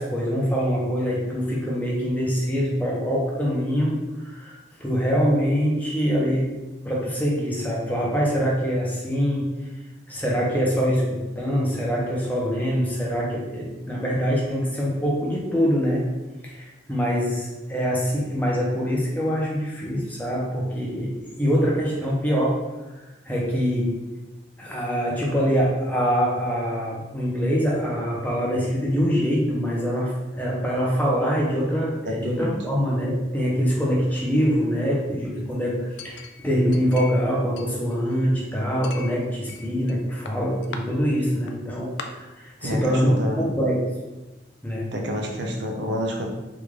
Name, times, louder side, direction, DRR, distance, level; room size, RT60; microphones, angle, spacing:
voice 1, 0.0-6.4 6.8-9.4 10.1-16.0 16.4-21.1 21.4-22.6 23.2-23.9 24.6-43.1 43.4-43.9 44.6-44.9, equal, 10° left, -4 dB, 0.7 m, -24 dB
voice 2, 32.1-32.5 41.1-41.2 42.6-43.5 44.9-46.3, equal, 70° right, 1 dB, 0.6 m, -29 dB
Chink clink, 36.0-37.3 37.6-38.3 38.8-40.0 40.3-40.8 41.5-41.6 42.0-42.1, left 5 dB, 65° left, 0.3 m, -39 dB
3.6 x 2.5 x 3.2 m, 1.1 s
head